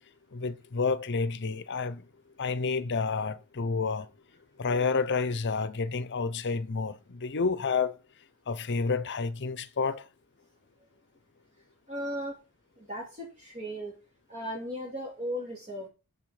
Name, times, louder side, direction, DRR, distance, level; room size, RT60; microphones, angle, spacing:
voice 1, 0.3-2.1 2.4-4.1 4.6-8.0 8.5-10.1, left 4 dB, 55° left, 0.8 m, -29 dB
voice 2, 11.9-12.3 12.8-13.9 14.3-15.9, equal, 35° right, 2.4 m, -36 dB
7.6 x 7.4 x 4.9 m
head